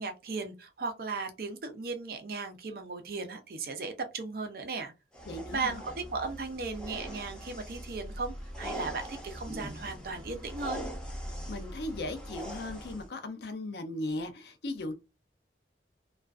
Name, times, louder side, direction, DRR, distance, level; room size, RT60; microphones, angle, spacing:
voice 1, 0.0-4.9 5.5-5.8 6.1-10.8, right 4 dB, 55° right, 0.5 m, -36 dB
sound 1, 5.1-13.1, equal, 5° left, 0.6 m, -41 dB
voice 2, 5.2-5.8 11.5-14.9, left 2 dB, 65° left, 0.5 m, -37 dB
2.4 x 2.3 x 2.3 m
head